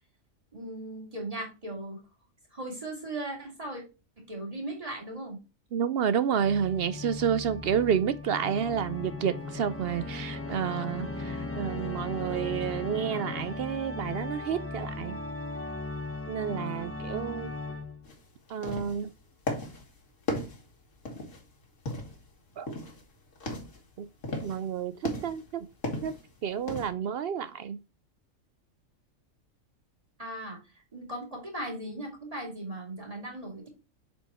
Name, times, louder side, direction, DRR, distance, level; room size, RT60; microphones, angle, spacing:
voice 1, 0.5-2.0 2.5-3.8 4.2-5.4 30.2-33.7, right 1 dB, 25° right, 2.8 m, -38 dB
voice 2, 5.7-15.2 16.3-17.5 18.5-19.1 22.6-22.7 24.0-24.1 24.4-24.9 25.2-25.7 26.0-26.2 26.4-27.8, right 8 dB, 65° right, 0.6 m, -30 dB
Organ, 6.3-18.2, left 2 dB, 10° left, 1.0 m, -37 dB
sound 1, 18.0-18.2 18.5-19.1 19.5-19.9 20.3-21.4 21.9-22.3 22.7-23.0 23.3-23.8 24.2-24.6 25.0-25.5 25.8-26.2 26.7-26.9, left 1 dB, 65° left, 2.0 m, -35 dB
7.1 x 4.7 x 4.2 m
omnidirectional pair, 1.4 m